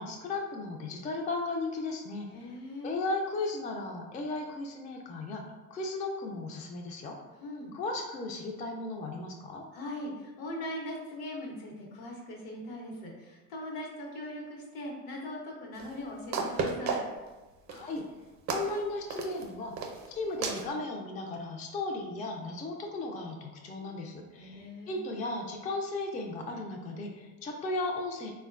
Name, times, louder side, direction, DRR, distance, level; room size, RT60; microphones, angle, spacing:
voice 1, 0.0-2.6 2.8-7.2 7.7-9.6 17.7-18.1 18.5-19.7 20.1-28.3, left 2 dB, 20° left, 1 dB, 0.3 m, -36 dB
voice 2, 2.3-2.9 7.4-7.7 9.7-17.0 24.4-25.0, left 1 dB, 70° left, 0 dB, 0.9 m, -40 dB
sound 1, 15.8-15.9 16.3-17.3 17.7-18.0 18.5-18.7 19.1-19.4 19.8-20.1 20.4-20.7, right 4 dB, 50° right, 0.5 m, -32 dB
3.7 x 2.1 x 2.4 m, 1.2 s
supercardioid pair, 95°, 37 cm